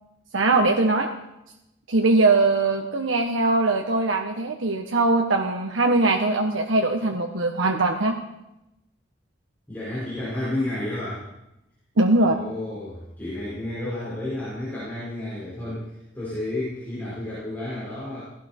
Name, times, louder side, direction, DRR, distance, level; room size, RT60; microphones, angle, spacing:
voice 1, 0.3-1.1 1.9-8.1 12.0-12.4, right 2 dB, 85° right, 3 dB, 1.2 m, -21 dB
voice 2, 9.7-11.3 12.2-18.2, left 1 dB, 10° left, -10 dB, 5.3 m, -31 dB
17.0 x 16.5 x 4.4 m, 0.89 s
head